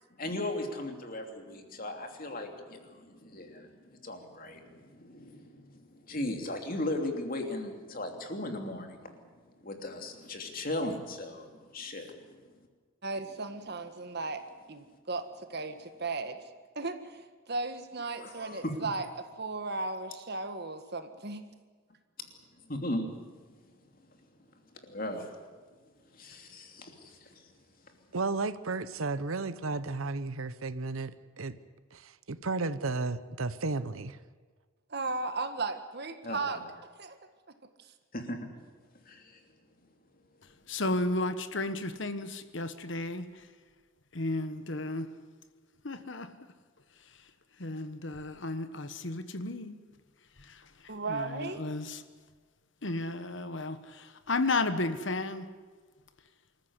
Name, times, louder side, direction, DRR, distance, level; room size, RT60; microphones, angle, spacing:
voice 1, 0.2-9.1 9.6-12.4 18.2-18.9 22.7-23.2 24.9-25.3 26.1-27.4 36.2-36.4 38.1-38.4 39.0-39.4, left 1 dB, 45° left, 3.0 m, -37 dB
voice 2, 13.0-14.4 14.7-16.4 16.8-21.4 34.9-36.6 37.0-37.2 50.9-51.6, right 3 dB, 50° right, 1.7 m, -36 dB
voice 3, 28.1-31.1 31.4-31.6 31.9-34.2, right 3 dB, 80° right, 1.0 m, -33 dB
voice 4, 40.4-43.5 44.1-45.1 45.8-46.3 47.0-47.3 47.6-49.8 50.4-52.0 52.8-55.5, left 2 dB, 60° left, 1.4 m, -34 dB
25.5 x 14.5 x 9.7 m
head